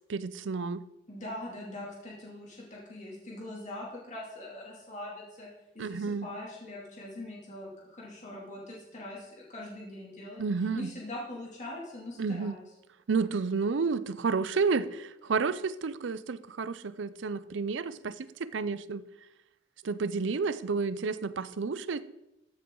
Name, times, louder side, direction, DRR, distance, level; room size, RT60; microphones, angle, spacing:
voice 1, 0.1-0.8 5.8-6.3 10.4-10.9 12.2-12.6 13.1-19.0 19.8-22.0, right 4 dB, 70° right, 15 dB, 0.5 m, -31 dB
voice 2, 1.1-5.5 5.7-12.7, left 1 dB, 40° left, -4 dB, 2.7 m, -42 dB
14.0 x 7.6 x 3.9 m, 0.92 s
head